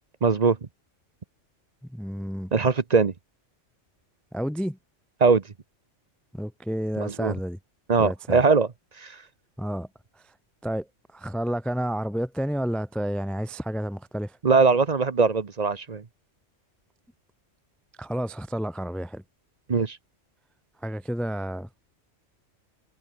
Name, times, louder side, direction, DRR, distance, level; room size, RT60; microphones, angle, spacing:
voice 1, 0.2-0.6 2.5-3.1 5.2-5.4 7.0-7.3 7.9-8.7 9.0-9.1 14.4-16.0 19.7-20.0, right 4 dB, 35° right, 0.9 m, -21 dB
voice 2, 1.9-2.5 4.3-4.8 6.3-7.6 8.0-8.4 9.6-9.9 10.2-10.3 10.6-10.9 11.1-14.4 18.0-19.2 20.8-21.7, equal, ahead, 0.3 m, -30 dB
omnidirectional pair, 1.3 m